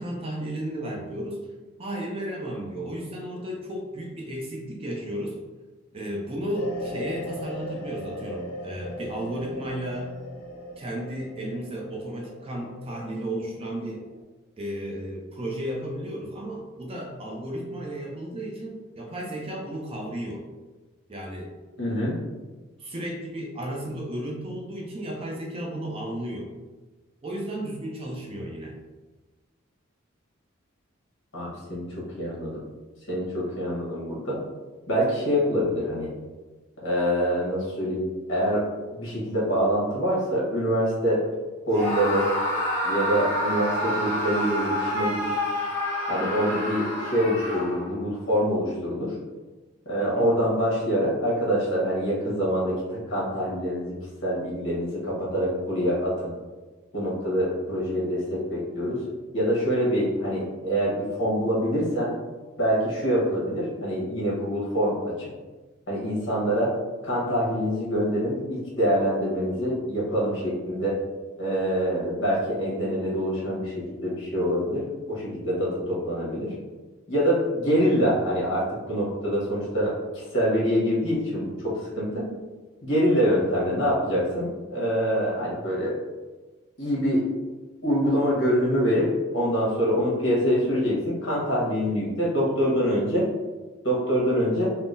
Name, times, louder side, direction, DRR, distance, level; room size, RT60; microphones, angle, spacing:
voice 1, 0.0-1.5 1.8-5.4 5.9-10.1 10.8-14.0 14.6-20.4 21.1-21.5 22.8-26.5 27.2-28.7 50.0-50.3, right 1 dB, 25° right, -1 dB, 0.4 m, -33 dB
sound 1, 6.6-14.2, left 1 dB, 90° left, 0.6 m, -38 dB
voice 2, 21.8-22.1 31.3-32.6 33.1-34.4 34.9-36.1 36.8-38.7 38.9-41.3 41.7-42.3 42.8-45.3 46.1-49.1 49.9-56.3 56.9-59.0 59.3-62.1 62.6-65.3 65.9-66.7 67.0-71.0 71.4-76.5 77.1-82.3 82.8-86.0 86.8-87.3 87.8-93.3 93.8-94.7, equal, 60° left, -6 dB, 1.1 m, -25 dB
Screaming, 41.7-48.0, equal, 15° left, 0.9 m, -28 dB
3.6 x 2.0 x 2.6 m, 1.2 s
head